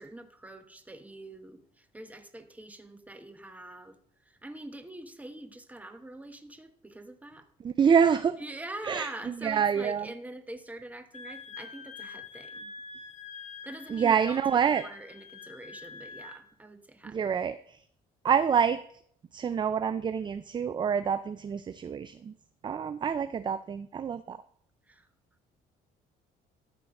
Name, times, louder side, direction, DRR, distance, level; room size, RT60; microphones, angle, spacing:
voice 1, 0.0-4.0 4.3-7.5 8.4-12.7 13.6-14.4 14.7-17.2 24.9-25.1, right 1 dB, 10° right, 1.1 m, -44 dB
voice 2, 7.6-8.4 8.8-10.1 13.9-14.8 17.0-17.6 18.2-18.8 19.3-22.3 22.6-24.4, right 7 dB, 25° right, 0.4 m, -27 dB
Wind instrument woodwind instrument, 11.1-16.4, left 4 dB, 45° left, 1.1 m, -45 dB
13.0 x 4.5 x 6.4 m
cardioid pair, 110°, 17 cm